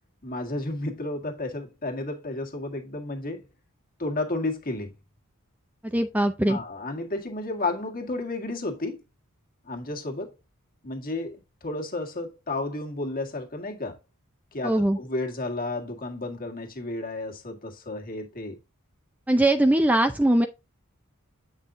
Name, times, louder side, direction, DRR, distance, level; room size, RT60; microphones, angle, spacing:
voice 1, 0.2-3.5 4.0-4.9 6.5-9.0 9.6-10.3 10.8-14.0 14.5-18.6, left 2 dB, 45° left, 1.8 m, -32 dB
voice 2, 5.8-6.6 14.6-15.0 19.3-20.5, right 1 dB, 5° right, 0.5 m, -21 dB
8.4 x 5.5 x 2.6 m
head